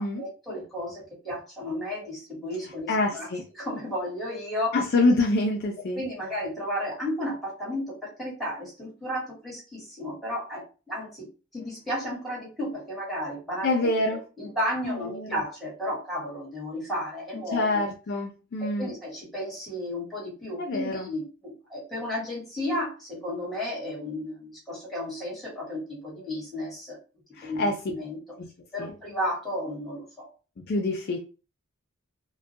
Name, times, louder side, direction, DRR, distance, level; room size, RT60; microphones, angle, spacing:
voice 1, 0.0-3.3 3.6-4.8 5.9-11.3 11.5-13.9 14.4-17.8 18.8-27.0 27.4-28.2 28.7-30.3, left 1 dB, ahead, -6 dB, 1.1 m, -33 dB
voice 2, 2.9-3.4 4.7-6.0 13.6-14.2 14.8-15.4 17.5-18.9 20.6-21.1 27.3-27.8 28.4-28.5 28.8-28.9 30.6-31.2, left 2 dB, 45° left, 2 dB, 0.3 m, -26 dB
2.3 x 2.1 x 2.6 m, 0.34 s
head